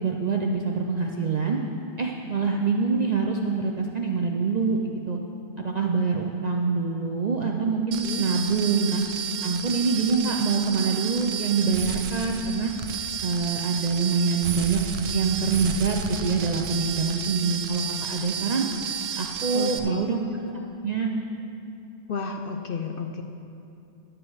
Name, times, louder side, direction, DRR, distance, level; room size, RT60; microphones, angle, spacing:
voice 1, 0.0-1.6 2.0-5.2 5.6-9.0 9.4-12.7 13.2-14.8 15.1-17.8 18.1-18.7 19.2-20.2 20.8-21.1, right 4 dB, 50° right, 1 dB, 0.5 m, -25 dB
sound 1, 7.9-19.8, right 7 dB, 85° right, 1.0 m, -32 dB
voice 2, 19.5-20.1 22.1-23.2, left 5 dB, 60° left, 4 dB, 0.6 m, -32 dB
11.0 x 4.5 x 7.8 m, 2.7 s
omnidirectional pair, 1.3 m